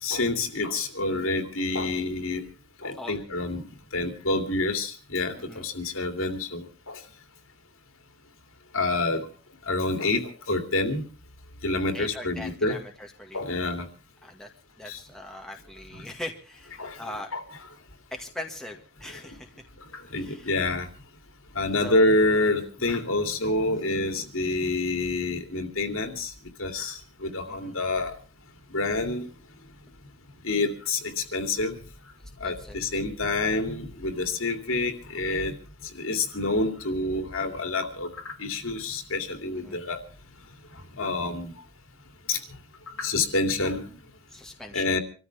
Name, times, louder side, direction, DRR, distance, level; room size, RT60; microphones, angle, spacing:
voice 1, 0.0-2.4 2.8-3.6 3.9-7.0 8.7-9.2 9.7-10.2 10.5-11.0 11.6-12.8 13.3-13.9 14.9-15.0 15.9-16.0 16.8-17.0 17.3-17.4 19.9-20.9 21.5-26.3 26.6-28.1 28.7-29.3 30.4-31.8 32.4-35.5 35.9-40.0 41.0-41.5 42.3-42.4 43.0-43.8 44.7-45.0, left 2 dB, 65° left, 6 dB, 2.8 m, -27 dB
voice 2, 11.9-13.6 14.2-14.5 14.8-17.3 18.1-19.5 20.1-20.5 21.8-22.0 27.5-27.8 32.4-32.8 39.4-39.8 44.3-45.0, left 1 dB, ahead, 1 dB, 1.9 m, -40 dB
26.5 x 14.0 x 3.5 m, 0.36 s
head